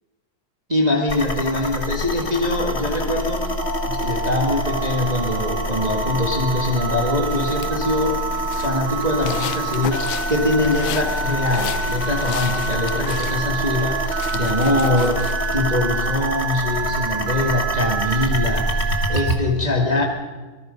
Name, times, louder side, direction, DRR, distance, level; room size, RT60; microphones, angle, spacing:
voice 1, 0.7-3.5 3.8-8.2 8.6-20.0, left 2 dB, 25° right, 0 dB, 0.8 m, -23 dB
sound 1, 1.1-19.4, left 1 dB, 30° left, 1.2 m, -27 dB
Telephone, 3.6-19.3, right 5 dB, 60° right, 1.4 m, -28 dB
sound 2, 7.3-15.5, left 12 dB, 75° left, 1.8 m, -34 dB
26.5 x 19.0 x 5.3 m, 1.3 s
omnidirectional pair, 4.1 m